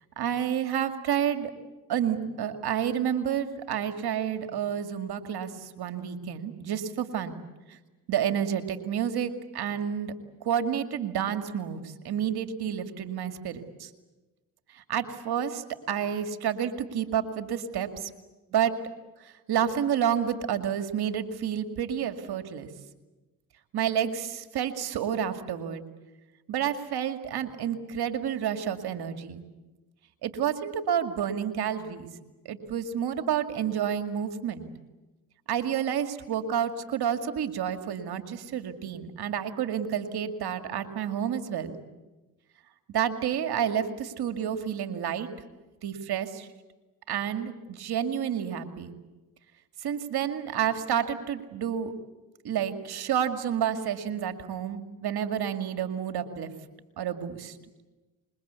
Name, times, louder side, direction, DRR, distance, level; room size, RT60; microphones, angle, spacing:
voice 1, 0.2-1.5 1.9-5.5 5.8-7.3 8.1-10.1 10.5-13.9 14.9-18.1 18.5-18.7 19.5-22.7 23.7-25.8 26.5-29.4 30.2-32.1 32.5-34.7 35.5-41.7 42.9-45.3 45.8-46.5 47.1-48.9 49.8-51.9 52.4-56.5 57.0-57.5, right 9 dB, 80° right, 8 dB, 2.3 m, -29 dB
26.0 x 22.5 x 8.3 m, 1.1 s
supercardioid pair, 45°, 38 cm